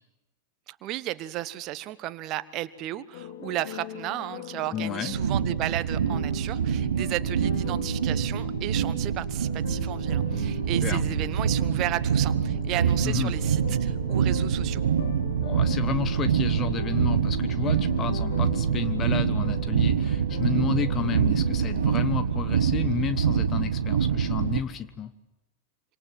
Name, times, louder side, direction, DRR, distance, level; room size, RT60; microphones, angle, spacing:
voice 1, 0.7-14.8, right 15 dB, 40° right, 14 dB, 1.2 m, -34 dB
sound 1, 3.1-22.0, left 10 dB, 55° left, 1.6 m, -41 dB
voice 2, 4.7-5.1 10.8-11.0 13.0-13.3 15.4-25.1, left 8 dB, 25° left, 13 dB, 1.2 m, -31 dB
sound 2, 5.1-24.6, right 7 dB, 65° right, 1.4 m, -25 dB
26.5 x 26.0 x 7.7 m, 1.0 s
figure-of-eight pair, 90°, 0 cm